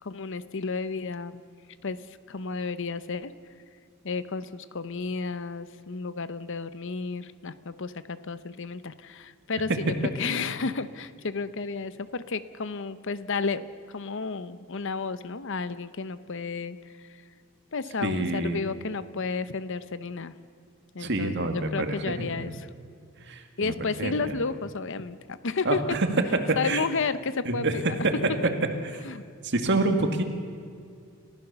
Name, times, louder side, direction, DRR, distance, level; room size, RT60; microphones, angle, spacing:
voice 1, 0.0-1.4 1.8-2.0 2.3-3.3 4.0-16.8 17.7-20.3 20.9-22.7 23.6-26.0 26.6-28.0 29.0-29.2, left 4 dB, 65° left, 14 dB, 0.9 m, -32 dB
voice 2, 18.0-18.6 21.0-22.5 23.3-23.7 24.0-24.4 25.7-26.1 26.6-26.8 27.5-27.8 28.0-28.1 29.4-30.2, right 2 dB, 60° right, 5 dB, 2.1 m, -27 dB
30.0 x 15.0 x 6.9 m, 2.3 s
head